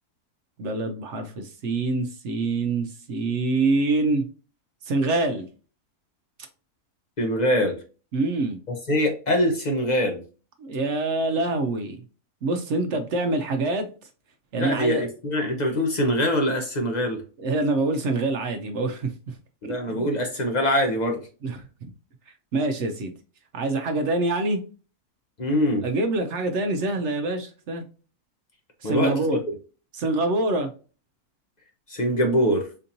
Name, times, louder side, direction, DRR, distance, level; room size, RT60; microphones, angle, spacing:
voice 1, 0.6-4.3 4.8-5.5 8.1-8.6 10.6-12.0 12.4-13.9 14.5-15.0 17.4-19.3 19.9-20.1 21.4-21.7 22.5-23.1 23.5-24.6 25.8-27.8 28.8-29.4 29.9-30.7, right 2 dB, 65° right, 0.7 m, -25 dB
voice 2, 7.2-7.8 8.9-10.2 14.5-17.2 19.6-21.2 25.4-25.8 28.8-29.1 31.9-32.6, equal, 55° left, 0.5 m, -23 dB
4.3 x 2.7 x 2.6 m
omnidirectional pair, 1.7 m